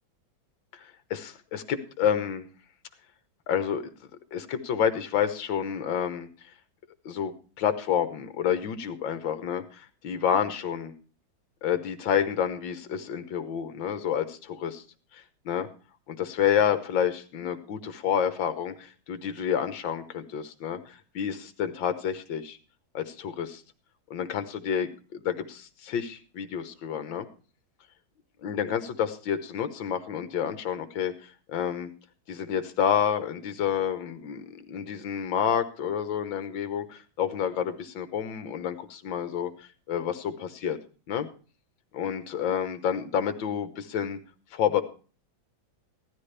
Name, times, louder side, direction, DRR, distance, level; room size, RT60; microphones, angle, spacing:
voice 1, 0.7-2.5 3.5-3.9 4.3-6.3 7.1-10.9 11.6-14.8 15.1-15.7 16.1-22.6 22.9-23.6 24.1-27.3 28.4-31.9 32.3-40.8 41.1-41.3 41.9-44.2 44.5-44.8, left 8 dB, 70° left, 10 dB, 1.7 m, -29 dB
16.0 x 12.5 x 3.3 m, 0.38 s
omnidirectional pair, 2.2 m